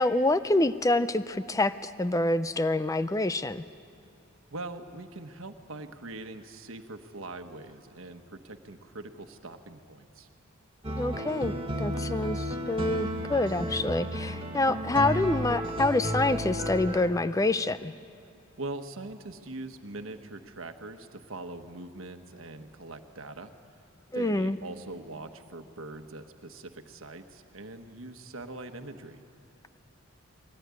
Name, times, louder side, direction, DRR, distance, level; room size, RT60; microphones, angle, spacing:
voice 1, 0.0-3.6 11.0-17.9 24.1-24.6, left 2 dB, 15° left, 13 dB, 0.5 m, -27 dB
voice 2, 4.5-10.3 18.6-23.5 24.1-29.2, right 2 dB, 70° right, 7 dB, 1.3 m, -42 dB
sound 1, 10.8-17.1, equal, 25° right, 1.8 m, -32 dB
22.5 x 18.0 x 9.7 m, 2.5 s
head